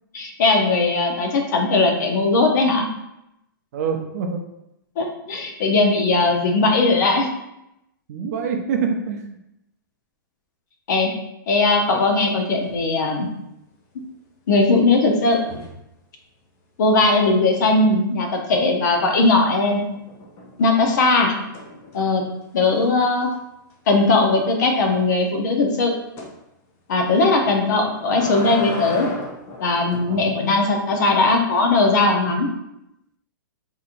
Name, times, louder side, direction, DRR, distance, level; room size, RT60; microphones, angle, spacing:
voice 1, 0.1-2.9 5.0-7.3 10.9-11.1 11.5-13.3 14.5-15.4 16.8-19.8 20.6-21.3 21.9-22.2 22.5-23.3 23.9-25.9 26.9-29.1 29.6-32.5, left 3 dB, 55° left, 2 dB, 0.7 m, -19 dB
voice 2, 3.7-4.4 8.1-9.4 30.1-30.4, right 6 dB, 45° right, 4 dB, 0.5 m, -26 dB
sound 1, 11.7-12.4 12.6-13.0 15.3-15.9 19.0-19.5 19.9-22.3 22.8-22.9 23.2-23.3 23.7-23.8 26.2-26.4 27.6-30.1 30.9-31.4, left 3 dB, 20° left, 0.4 m, -36 dB
4.1 x 2.8 x 2.5 m, 0.86 s
hypercardioid pair, 160°, 11 cm